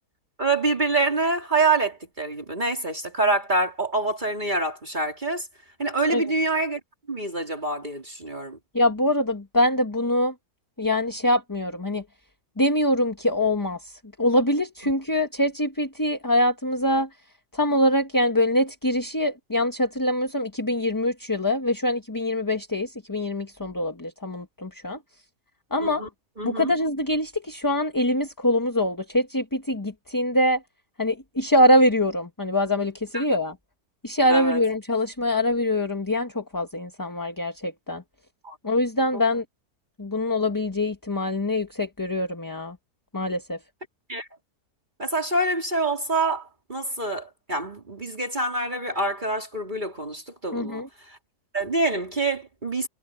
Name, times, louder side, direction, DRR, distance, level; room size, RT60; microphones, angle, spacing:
voice 1, 0.4-5.5 5.8-6.8 7.1-8.6 25.8-26.1 26.4-26.7 33.1-33.2 34.3-34.6 38.4-38.6 44.1-44.3 45.0-50.8 51.5-52.9, right 2 dB, 30° right, 3.2 m, -26 dB
voice 2, 8.7-10.3 10.8-12.0 12.6-17.1 17.5-25.0 25.7-26.1 26.4-30.6 31.0-33.5 34.0-38.0 38.6-39.4 40.0-42.8 43.1-43.6 50.5-50.9, left 1 dB, 15° left, 1.3 m, -24 dB
omnidirectional pair, 1.7 m